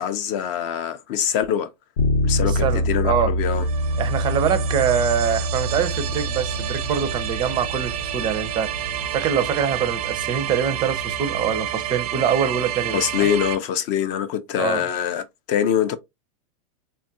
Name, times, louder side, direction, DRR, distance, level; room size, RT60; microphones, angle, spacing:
voice 1, 0.0-1.7 2.2-3.7 12.9-16.0, left 9 dB, 40° left, 0.4 m, -24 dB
Bass guitar, 2.0-11.8, equal, 80° left, 0.8 m, -27 dB
voice 2, 2.4-3.3 4.0-8.7 9.1-13.3 14.6-14.8, right 8 dB, 25° right, 0.4 m, -24 dB
sound 1, 3.5-13.6, right 11 dB, 90° right, 0.6 m, -29 dB
3.4 x 2.3 x 2.6 m
supercardioid pair, 145°, 19 cm